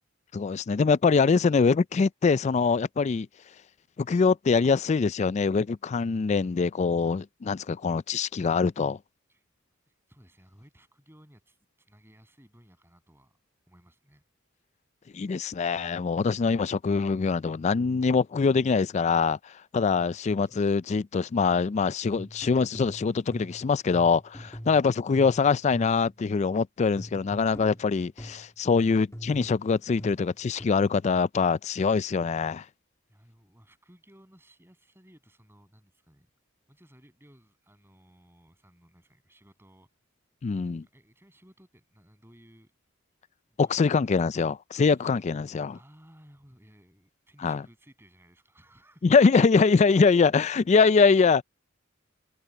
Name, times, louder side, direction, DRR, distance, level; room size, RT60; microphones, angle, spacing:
voice 1, 0.3-3.3 4.0-9.0 15.1-32.6 40.4-40.8 43.6-45.8 47.4-47.6 49.0-51.4, left 5 dB, 35° left, 0.3 m, -23 dB
voice 2, 9.9-13.4 13.7-14.2 19.8-20.7 24.4-24.6 33.1-36.3 36.7-39.9 40.8-42.7 43.5-43.9 44.8-45.3 45.7-49.2 50.0-50.6, equal, 10° right, 7.1 m, -58 dB
sound 1, 22.1-26.2 27.0-28.5 29.1-30.7, equal, 15° left, 1.8 m, -43 dB
head